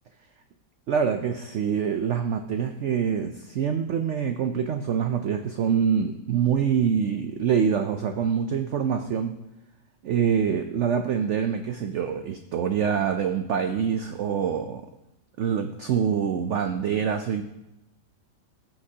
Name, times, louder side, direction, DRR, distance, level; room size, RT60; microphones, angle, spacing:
voice 1, 0.9-9.3 10.0-14.8 15.4-17.4, right 7 dB, 90° right, 6 dB, 0.6 m, -25 dB
15.0 x 5.8 x 2.8 m, 0.88 s
omnidirectional pair, 1.9 m